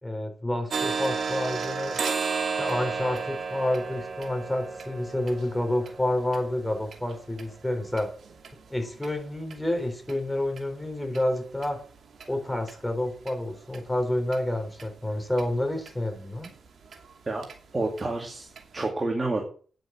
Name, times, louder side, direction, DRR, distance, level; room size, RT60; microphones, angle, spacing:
voice 1, 0.0-2.0 2.6-8.1 8.7-11.8 12.3-16.5, left 1 dB, 10° left, 5 dB, 3.8 m, -29 dB
sound 1, 0.7-8.5 9.0-9.1 9.5-9.6 10.1-10.2 10.6-10.7 11.1-11.2 11.6-11.7 12.2-12.3 12.7-12.8 13.3-13.4 13.7-13.8 14.3-14.4 14.8-14.9 15.4-15.5 15.9-16.0 16.4-16.5 16.9-17.0 17.4-17.5 18.0-18.1 18.6-18.7, right 5 dB, 60° right, 2.6 m, -33 dB
voice 2, 17.7-19.4, right 2 dB, 25° right, 1 dB, 2.3 m, -29 dB
9.6 x 7.8 x 7.4 m, 0.42 s
cardioid pair, 110°, 0 cm